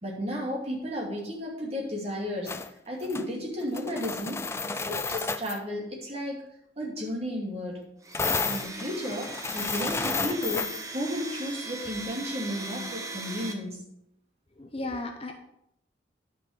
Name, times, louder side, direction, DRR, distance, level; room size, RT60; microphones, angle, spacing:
voice 1, 0.0-2.5 2.9-4.4 4.9-6.4 6.8-7.8 8.4-13.8, equal, 35° right, -3 dB, 2.5 m, -33 dB
sound 1, 2.5-2.7 3.0-3.2 3.6-5.6 8.1-10.8, left 4 dB, 15° left, 0.3 m, -31 dB
Domestic sounds home sounds, 8.0-13.5, right 2 dB, 15° right, 0.9 m, -39 dB
voice 2, 14.6-15.4, left 2 dB, 30° left, 5 dB, 0.8 m, -35 dB
10.5 x 5.7 x 5.0 m, 0.76 s
head